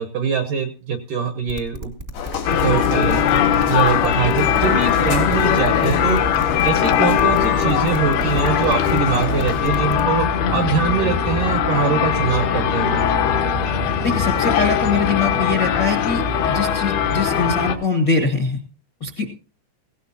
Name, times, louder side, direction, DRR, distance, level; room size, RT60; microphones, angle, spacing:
voice 1, 0.0-1.9 2.6-3.2 3.7-6.2 6.6-13.0, right 6 dB, 70° right, 7 dB, 2.1 m, -23 dB
sound 1, 1.5-10.1, equal, 25° right, 1.0 m, -34 dB
sound 2, 2.1-9.6, left 7 dB, 85° left, 5.4 m, -29 dB
sound 3, 2.5-17.8, left 8 dB, 70° left, 3.2 m, -20 dB
voice 2, 14.0-18.6 19.0-19.3, left 4 dB, 45° left, 3 dB, 1.4 m, -22 dB
18.0 x 17.0 x 2.8 m, 0.35 s
omnidirectional pair, 5.0 m